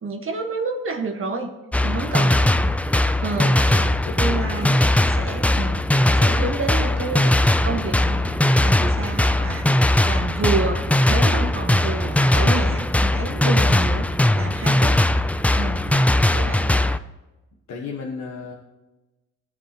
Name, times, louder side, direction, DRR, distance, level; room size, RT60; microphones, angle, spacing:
voice 1, 0.0-1.5 1.8-2.4 3.2-4.8 5.1-5.8 6.1-14.1 14.3-15.3 15.5-15.9 16.3-16.7, right 3 dB, 45° right, 4 dB, 1.5 m, -29 dB
sound 1, 1.7-17.0, left 1 dB, 5° left, 0.4 m, -19 dB
voice 2, 2.2-2.8 4.0-4.6 13.6-13.8 15.8-16.1 17.7-18.5, left 4 dB, 65° left, -1 dB, 1.4 m, -35 dB
17.5 x 7.3 x 3.0 m, 1.1 s
cardioid pair, 90°, 30 cm